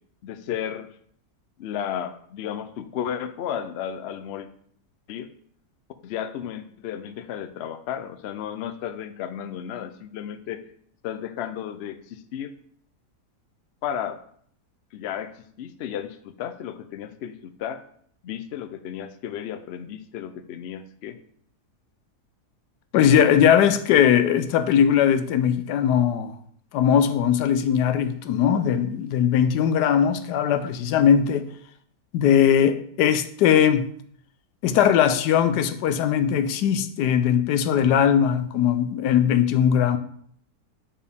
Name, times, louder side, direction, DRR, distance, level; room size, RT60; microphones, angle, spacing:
voice 1, 0.2-0.9 1.6-4.5 5.1-5.3 6.0-10.6 11.0-12.5 13.8-14.2 14.9-17.8 18.2-21.2, left 9 dB, 65° left, 0.6 m, -33 dB
voice 2, 22.9-26.3 26.7-31.5 32.1-33.9 34.6-40.0, left 8 dB, 85° left, 1.2 m, -20 dB
8.6 x 4.4 x 3.5 m
omnidirectional pair, 1.7 m